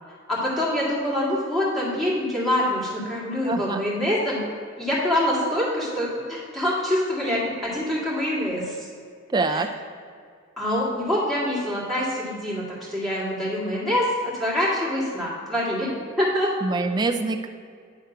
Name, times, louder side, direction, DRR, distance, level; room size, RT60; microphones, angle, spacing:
voice 1, 0.3-4.4 4.8-8.8 9.5-9.7 10.6-12.6 12.9-14.1 14.3-15.9 16.2-16.5, left 1 dB, ahead, -8 dB, 2.1 m, -25 dB
voice 2, 3.4-3.8 9.3-9.7 16.6-17.5, right 3 dB, 20° right, 5 dB, 0.4 m, -24 dB
9.8 x 3.5 x 5.8 m, 2.2 s
head